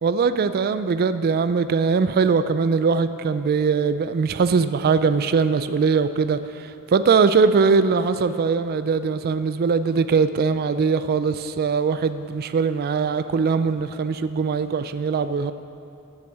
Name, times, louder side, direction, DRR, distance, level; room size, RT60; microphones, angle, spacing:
voice 1, 0.0-15.5, right 5 dB, 45° right, 12 dB, 0.3 m, -21 dB
14.5 x 8.9 x 4.7 m, 2.8 s
head